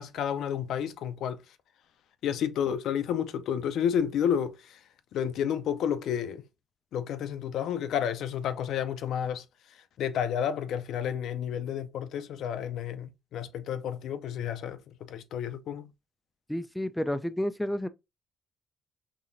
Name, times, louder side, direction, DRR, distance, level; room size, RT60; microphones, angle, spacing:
voice 1, 0.0-1.4 2.2-4.8 5.1-6.5 6.9-15.9, left 9 dB, 80° left, 0.5 m, -31 dB
voice 2, 16.5-17.9, left 1 dB, 5° left, 0.4 m, -30 dB
4.0 x 2.9 x 2.6 m
cardioid pair, 90°, 0 cm